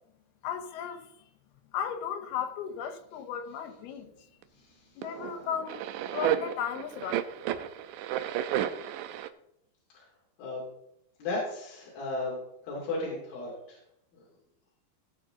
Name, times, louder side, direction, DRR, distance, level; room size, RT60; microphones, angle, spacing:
voice 1, 0.4-1.3 1.7-4.1 5.0-5.9 6.1-7.3, left 8 dB, 85° left, 2.9 m, -35 dB
sound 1, 4.4-4.5 5.0-9.3, right 11 dB, 85° right, 2.0 m, -32 dB
voice 2, 11.2-13.8 14.1-14.2, left 2 dB, 70° left, 4.4 m, -35 dB
18.0 x 6.2 x 3.8 m
omnidirectional pair, 4.4 m